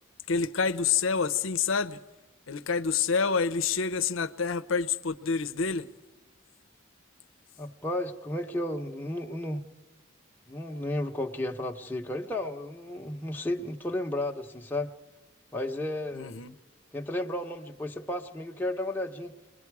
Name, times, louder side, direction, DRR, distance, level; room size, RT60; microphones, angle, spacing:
voice 1, 0.3-2.0 2.5-5.9 16.1-16.5, left 5 dB, 70° left, 0.7 m, -27 dB
voice 2, 7.6-9.6 10.5-14.9 15.5-16.4 16.9-19.4, left 1 dB, 10° left, 1.0 m, -33 dB
29.0 x 21.0 x 4.8 m
head